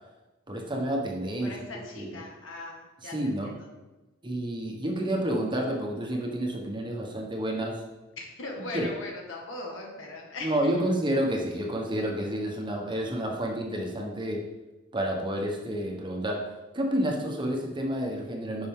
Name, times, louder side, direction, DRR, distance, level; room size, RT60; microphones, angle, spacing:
voice 1, 0.5-1.5 2.0-2.2 3.0-3.6 4.2-7.8 8.7-8.9 10.4-14.4 14.9-18.7, right 1 dB, 25° right, 0 dB, 1.3 m, -30 dB
voice 2, 1.4-3.1 3.4-3.5 8.2-10.7, left 2 dB, 70° left, 0 dB, 1.9 m, -39 dB
10.5 x 5.9 x 3.7 m, 1.1 s
head